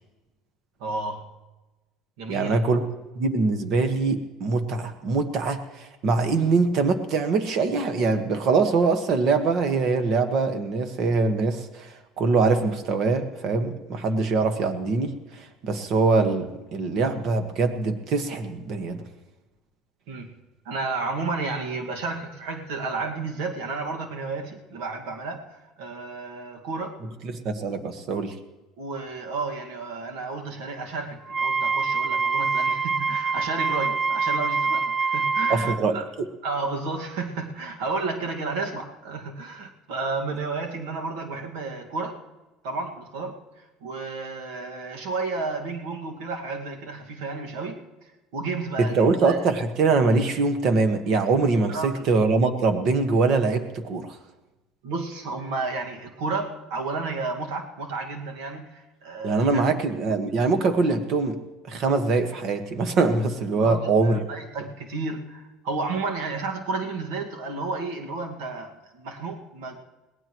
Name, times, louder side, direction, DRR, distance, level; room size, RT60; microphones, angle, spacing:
voice 1, 0.8-1.2 2.2-2.6 20.1-20.3 20.7-27.0 28.8-36.1 36.4-42.2 42.6-43.4 43.8-47.8 48.3-49.4 51.7-52.1 54.8-59.7 63.5-69.8, right 3 dB, 80° right, 3 dB, 1.9 m, -32 dB
voice 2, 2.3-2.8 3.1-19.0 27.2-28.3 35.5-36.3 48.8-54.1 59.2-61.4 61.6-64.2, right 4 dB, 50° right, 8 dB, 1.5 m, -23 dB
Wind instrument woodwind instrument, 31.3-35.8, right 4 dB, 20° right, 0.5 m, -25 dB
22.0 x 18.0 x 3.1 m, 1.1 s
cardioid pair, 125°, 0 cm